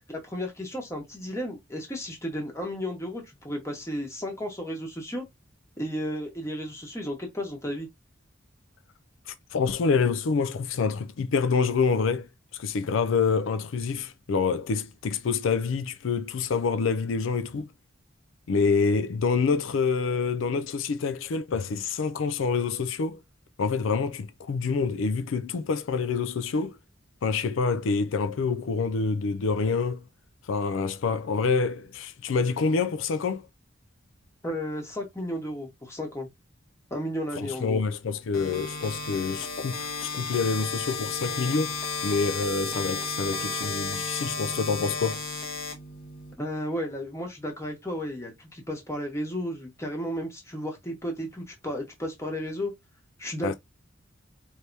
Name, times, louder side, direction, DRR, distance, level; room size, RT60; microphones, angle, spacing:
voice 1, 0.2-5.2 5.8-7.9 34.4-36.3 36.9-37.8 46.4-52.7 53.2-53.6, equal, 15° left, 1.5 m, -33 dB
voice 2, 9.3-12.3 12.5-17.7 18.5-23.2 23.6-26.8 27.2-30.0 30.4-33.5 37.3-41.8 42.0-45.2 53.4-53.5, left 5 dB, 75° left, 0.4 m, -27 dB
sound 1, 38.3-46.3, left 4 dB, 45° left, 1.5 m, -33 dB
4.6 x 3.3 x 2.7 m
head